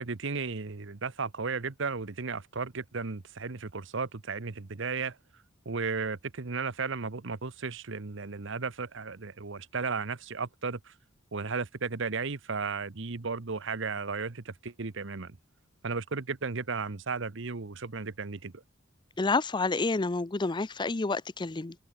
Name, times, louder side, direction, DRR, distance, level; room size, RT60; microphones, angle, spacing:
voice 1, 0.0-5.2 5.6-10.9 11.3-15.4 15.8-18.6, right 4 dB, 65° right, 1.0 m, -34 dB
voice 2, 19.2-21.7, left 3 dB, 20° left, 0.6 m, -29 dB
open air
head